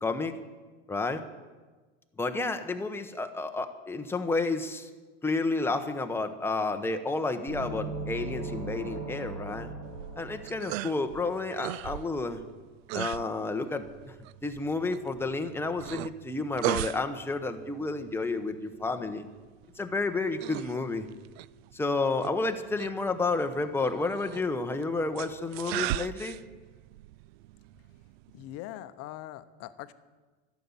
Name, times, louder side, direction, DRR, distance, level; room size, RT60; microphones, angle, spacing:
voice 1, 0.0-0.4 0.9-1.2 2.2-4.9 5.2-9.7 10.2-12.4 12.9-14.1 14.4-19.2 19.8-21.1 21.7-26.4, left 3 dB, 5° left, 6 dB, 0.9 m, -31 dB
sound 1, 7.5-11.2, right 2 dB, 45° right, 3.3 m, -38 dB
sound 2, 9.9-28.6, right 16 dB, 70° right, 0.5 m, -39 dB
voice 2, 28.3-29.9, left 14 dB, 50° left, 13 dB, 0.8 m, -42 dB
12.0 x 7.2 x 9.7 m, 1.3 s
supercardioid pair, 130°, 32 cm